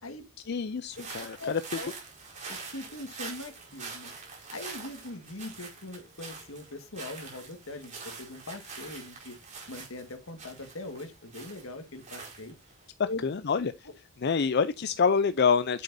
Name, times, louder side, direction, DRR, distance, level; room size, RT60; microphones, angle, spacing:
voice 1, 0.5-1.6 13.0-13.7 14.2-15.8, left 5 dB, 55° left, 0.5 m, -26 dB
sound 1, 0.9-12.8, right 4 dB, 35° right, 4.8 m, -44 dB
voice 2, 1.4-1.9 2.5-4.1 4.5-9.4 9.7-12.5 13.0-13.2 13.8-13.9, left 2 dB, 80° left, 1.8 m, -41 dB
8.4 x 7.7 x 2.7 m
head